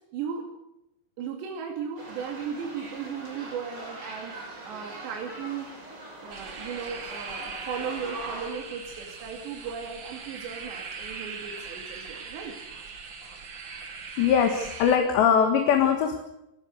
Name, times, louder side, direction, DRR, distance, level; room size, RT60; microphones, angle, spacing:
voice 1, 0.1-0.5 1.2-4.3 4.6-5.7 6.2-12.6, right 7 dB, 75° right, 1 dB, 4.5 m, -36 dB
sound 1, 2.0-8.5, right 1 dB, 25° right, 5.6 m, -41 dB
sound 2, 6.3-15.0, right 5 dB, 45° right, 1.6 m, -40 dB
voice 2, 14.2-16.2, left 7 dB, 75° left, 4 dB, 3.9 m, -21 dB
29.5 x 16.5 x 6.5 m, 0.85 s
omnidirectional pair, 5.1 m